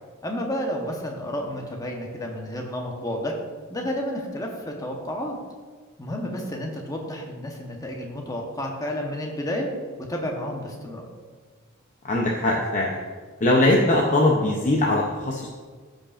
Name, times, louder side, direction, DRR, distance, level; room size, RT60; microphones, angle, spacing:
voice 1, 0.2-3.3 3.7-5.4 6.0-9.7 10.0-11.0, equal, 15° left, 1 dB, 1.0 m, -31 dB
voice 2, 12.0-13.0 13.4-15.5, left 1 dB, 35° left, -2 dB, 0.7 m, -21 dB
13.5 x 5.1 x 2.5 m, 1.5 s
head